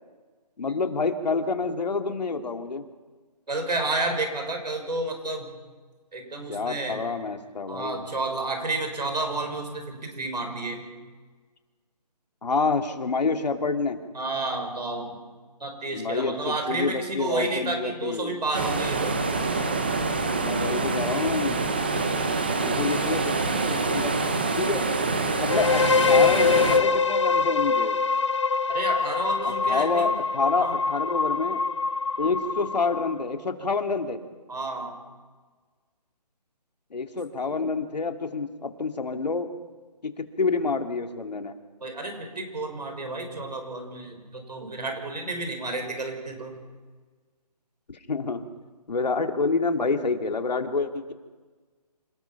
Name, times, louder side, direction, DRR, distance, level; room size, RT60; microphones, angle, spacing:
voice 1, 0.6-2.8 6.5-8.0 12.4-14.0 15.9-16.3 16.7-18.4 20.4-21.7 22.6-23.4 23.6-24.1 24.6-24.8 25.3-28.0 29.4-31.6 32.2-34.2 36.9-39.5 40.0-41.5 48.1-48.4 48.9-51.1, left 4 dB, 80° left, 5 dB, 2.4 m, -28 dB
voice 2, 3.5-5.5 6.1-7.0 7.7-10.9 14.1-15.2 15.6-19.2 28.7-30.1 30.6-30.7 34.5-35.0 41.8-46.6, right 2 dB, 80° right, 5 dB, 6.3 m, -31 dB
sound 1, 18.5-26.8, right 3 dB, 15° right, 0.8 m, -26 dB
sound 2, 25.5-33.3, left 5 dB, 45° left, 0.7 m, -24 dB
27.5 x 19.0 x 5.9 m, 1.4 s
hypercardioid pair, 180°, 21 cm